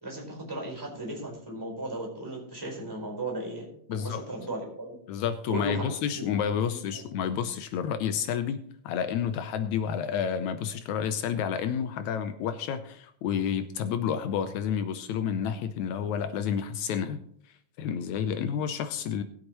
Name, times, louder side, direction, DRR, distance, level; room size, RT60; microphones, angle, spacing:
voice 1, 0.0-5.0 5.5-6.3 6.6-7.0, right 1 dB, 5° right, -1 dB, 4.3 m, -36 dB
voice 2, 3.9-4.3 5.1-17.2 17.8-19.2, left 8 dB, 80° left, 10 dB, 2.0 m, -30 dB
20.0 x 8.0 x 3.0 m, 0.66 s
omnidirectional pair, 3.4 m